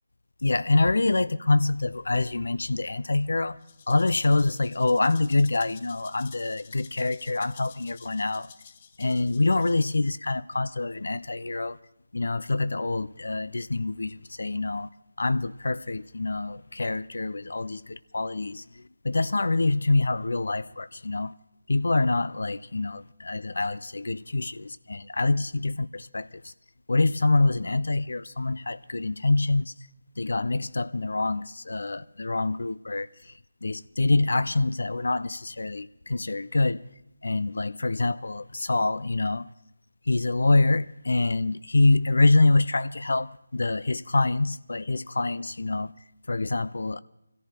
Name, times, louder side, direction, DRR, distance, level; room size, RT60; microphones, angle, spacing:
voice 1, 0.4-3.6 3.9-8.5 9.0-11.8 12.1-14.9 15.2-21.3 21.7-26.5 26.9-29.7 30.2-36.8 37.2-39.5 40.1-45.9 46.3-47.0, left 2 dB, 60° left, 0.5 m, -25 dB
Rattle (instrument), 3.6-10.1, left 7 dB, 30° left, 0.7 m, -51 dB
23.5 x 14.0 x 4.4 m
figure-of-eight pair, 155°, 0 cm